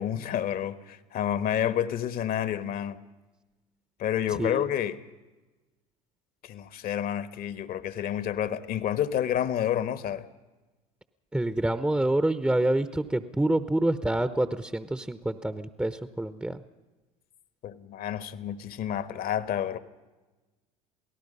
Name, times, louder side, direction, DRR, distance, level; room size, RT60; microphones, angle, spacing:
voice 1, 0.0-3.0 4.0-5.0 6.4-10.2 17.6-19.8, left 10 dB, 50° left, 1.4 m, -29 dB
voice 2, 4.3-4.6 11.3-16.6, right 1 dB, 5° right, 0.9 m, -27 dB
28.0 x 18.0 x 5.5 m
hypercardioid pair, 70°, 19 cm